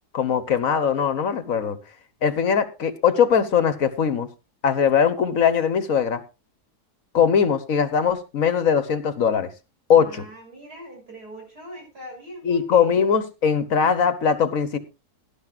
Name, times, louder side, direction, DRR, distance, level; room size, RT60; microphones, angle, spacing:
voice 1, 0.1-1.8 2.2-4.3 4.6-6.2 7.1-9.5 9.9-10.3 12.4-14.8, left 7 dB, 60° left, 12 dB, 1.5 m, -20 dB
voice 2, 9.9-13.1, right 1 dB, 85° right, 1 dB, 7.3 m, -41 dB
18.0 x 11.5 x 2.4 m, 0.28 s
omnidirectional pair, 1.7 m